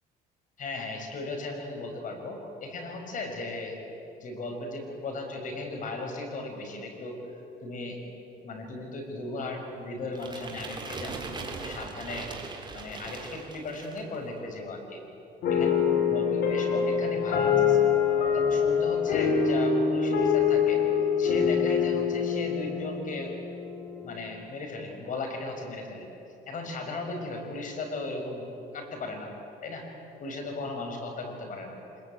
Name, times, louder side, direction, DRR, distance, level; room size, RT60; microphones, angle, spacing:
voice 1, 0.6-3.8 4.2-7.2 7.6-8.0 8.4-12.3 12.7-15.0 15.5-17.8 18.3-20.8 21.2-23.4 24.0-26.1 26.5-28.4 28.7-29.3 29.6-29.9 30.2-31.8, left 2 dB, 50° left, 3 dB, 6.3 m, -36 dB
sound 1, 10.1-14.2, right 4 dB, 25° right, 3.8 m, -40 dB
sound 2, 15.4-24.0, left 6 dB, 70° left, 5.4 m, -25 dB
26.0 x 22.0 x 9.1 m, 2.9 s
cardioid pair, 110°, 17 cm